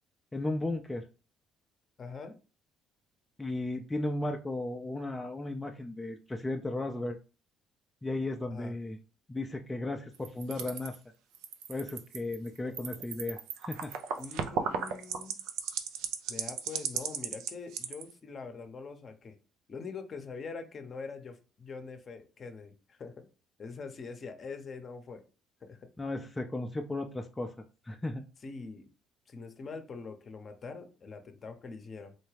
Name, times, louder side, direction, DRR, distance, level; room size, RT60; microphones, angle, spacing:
voice 1, 0.3-1.1 3.4-7.2 8.0-9.0 9.3-11.0 11.7-13.9 26.0-27.5 27.9-28.3, left 2 dB, 15° left, 3 dB, 0.5 m, -35 dB
voice 2, 2.0-2.3 8.4-8.7 14.2-15.4 16.3-19.4 19.7-23.3 23.6-25.2 25.6-25.9 28.4-28.9 29.3-32.1, left 4 dB, 45° left, 7 dB, 0.7 m, -43 dB
sound 1, 10.1-11.0 11.3-18.1, right 7 dB, 75° right, 0.5 m, -35 dB
4.1 x 2.2 x 3.3 m, 0.34 s
supercardioid pair, 65°, 0 cm